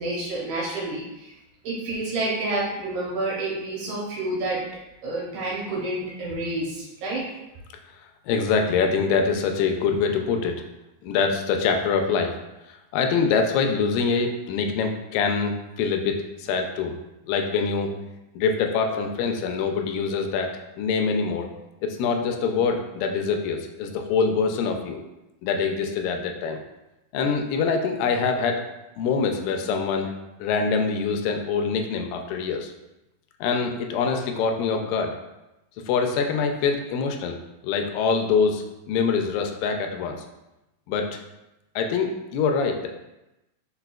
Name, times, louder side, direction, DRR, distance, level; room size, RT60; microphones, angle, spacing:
voice 1, 0.0-1.3 1.6-4.6 5.0-7.2, right 2 dB, 75° right, -4 dB, 2.3 m, -29 dB
voice 2, 8.3-10.6 11.0-12.4 12.7-16.9 17.3-17.9 18.4-20.5 20.8-21.5 21.8-25.0 25.4-26.6 27.1-28.6 29.0-30.1 30.4-32.7 33.4-35.1 35.9-40.3 40.9-41.2 41.8-42.9, left 5 dB, 80° left, 4 dB, 2.1 m, -24 dB
4.9 x 4.3 x 2.3 m, 0.96 s
omnidirectional pair, 4.1 m